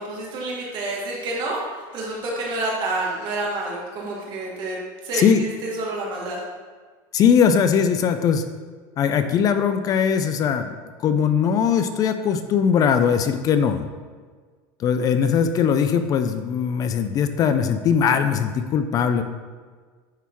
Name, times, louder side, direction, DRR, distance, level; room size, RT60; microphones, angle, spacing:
voice 1, 0.0-4.8 5.0-6.4, right 2 dB, 45° right, -3 dB, 1.8 m, -28 dB
voice 2, 7.1-8.5 9.0-10.7 11.0-13.9 14.8-19.2, left 7 dB, 35° left, 9 dB, 0.4 m, -20 dB
10.0 x 3.5 x 3.0 m, 1.5 s
supercardioid pair, 135°, 11 cm